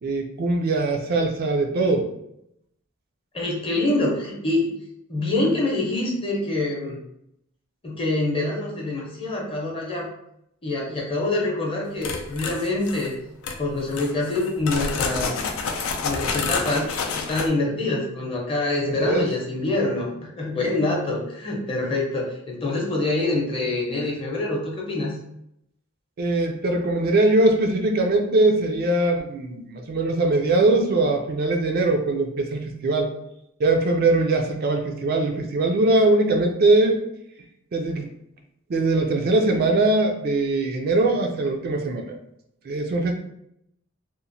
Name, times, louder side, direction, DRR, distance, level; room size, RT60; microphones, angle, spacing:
voice 1, 0.0-2.1 18.9-19.3 26.2-33.1 33.6-37.0 37.7-38.1 38.7-42.1 42.6-43.1, right 2 dB, 50° right, 3 dB, 0.3 m, -21 dB
voice 2, 3.3-4.7 5.1-7.0 7.8-10.1 10.6-13.2 13.6-15.4 16.0-25.2, left 2 dB, 25° left, -2 dB, 0.7 m, -25 dB
sound 1, 12.0-13.1 13.4-13.6 13.9-17.5, left 4 dB, 80° left, 0.4 m, -28 dB
2.9 x 2.0 x 2.6 m, 0.77 s
head